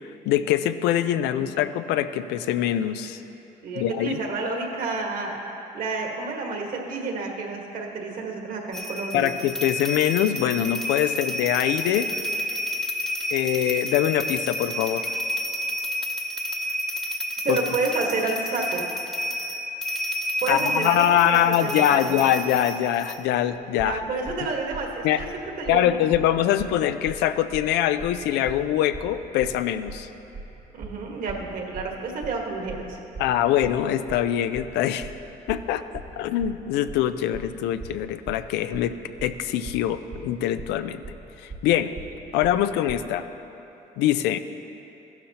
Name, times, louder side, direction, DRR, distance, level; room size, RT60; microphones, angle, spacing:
voice 1, 0.3-3.2 3.8-4.2 9.1-12.1 13.3-15.1 17.5-17.6 20.5-24.0 25.0-25.2 25.7-30.1 33.2-35.1 35.5-39.0 39.2-41.0 41.4-41.9 42.3-43.2 44.0-44.4, left 11 dB, 85° left, 11 dB, 0.5 m, -23 dB
voice 2, 3.6-5.4 5.7-9.3 17.4-18.9 20.4-22.1 23.8-25.3 25.6-26.0 30.7-33.0, right 3 dB, 55° right, 1 dB, 1.6 m, -30 dB
sound 1, 8.7-23.2, left 1 dB, 5° left, 0.9 m, -30 dB
sound 2, 23.8-43.0, right 3 dB, 35° right, 1.1 m, -40 dB
14.5 x 12.0 x 2.9 m, 2.9 s
cardioid pair, 110°, 17 cm